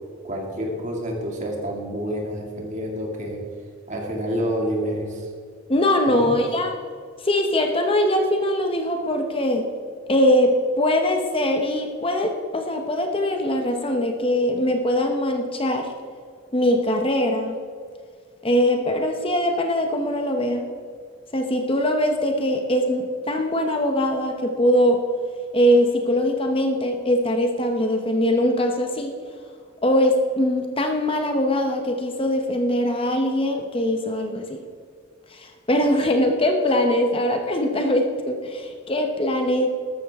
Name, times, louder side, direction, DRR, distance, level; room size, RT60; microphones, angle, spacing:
voice 1, 0.2-3.4 3.9-5.3 6.1-6.4, equal, 40° right, 0 dB, 2.4 m, -28 dB
voice 2, 5.7-6.8 7.2-9.7 10.1-15.9 16.5-17.6 18.4-20.7 21.3-25.0 25.5-29.2 29.8-34.6 35.3-39.7, left 1 dB, 30° left, 4 dB, 0.9 m, -22 dB
13.5 x 12.5 x 3.6 m, 2.1 s
head